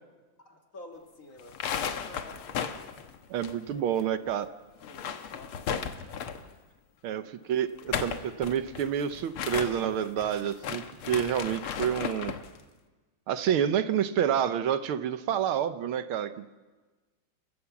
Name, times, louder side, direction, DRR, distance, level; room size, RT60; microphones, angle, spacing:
voice 1, 0.4-1.6 2.0-2.7 3.6-4.3 4.8-6.0 7.0-7.3, left 1 dB, 40° left, 3 dB, 2.2 m, -50 dB
sound 1, 1.4-4.0 4.3-4.4 4.8-6.5 7.6-12.5, left 7 dB, 90° left, 2.1 m, -35 dB
voice 2, 3.3-4.5 7.0-12.3 13.3-16.7, right 9 dB, 75° right, 11 dB, 1.7 m, -28 dB
29.5 x 15.0 x 7.2 m, 1.3 s
omnidirectional pair, 2.3 m